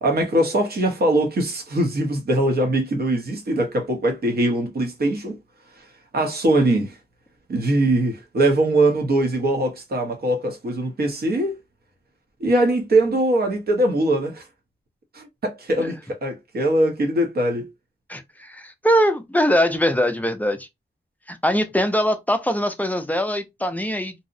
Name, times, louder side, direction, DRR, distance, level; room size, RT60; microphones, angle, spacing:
voice 1, 0.0-5.4 6.1-7.0 7.5-11.6 12.4-14.5 15.1-17.7, right 1 dB, 60° right, 0.7 m, -21 dB
voice 2, 18.1-20.7 21.3-24.1, equal, 10° left, 0.4 m, -22 dB
2.7 x 2.0 x 2.5 m
wide cardioid pair, 150°, 18 cm